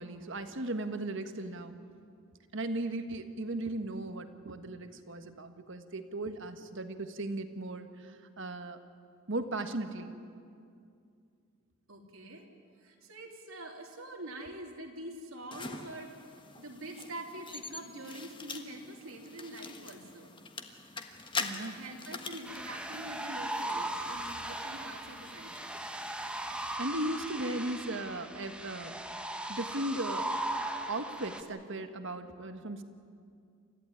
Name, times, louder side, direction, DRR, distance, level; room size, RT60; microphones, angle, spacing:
voice 1, 0.0-1.8 2.5-8.8 9.3-10.1 21.4-21.8 26.8-28.9 29.5-30.3 30.9-32.8, right 2 dB, 60° right, 8 dB, 1.5 m, -37 dB
voice 2, 11.9-12.5 12.8-16.1 16.6-20.3 21.7-25.7, right 1 dB, 80° right, 1 dB, 3.1 m, -45 dB
sound 1, 15.5-26.8, left 4 dB, 25° left, 1.4 m, -44 dB
sound 2, 22.5-31.4, right 1 dB, 5° right, 1.3 m, -38 dB
28.5 x 14.5 x 9.9 m, 2.4 s
head